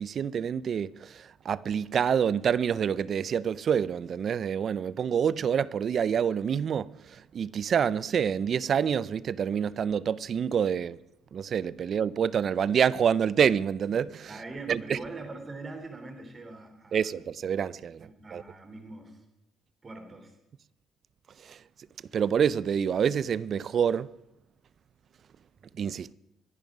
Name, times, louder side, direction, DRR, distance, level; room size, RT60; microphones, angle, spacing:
voice 1, 0.0-11.0 11.3-14.3 14.7-15.0 16.9-18.4 21.4-21.6 22.1-24.1 25.8-26.1, right 8 dB, 50° right, 0.5 m, -27 dB
voice 2, 14.3-17.1 18.0-19.2 19.8-20.4, right 3 dB, 35° right, 3.6 m, -42 dB
25.0 x 10.5 x 5.0 m
supercardioid pair, 75°, 0 cm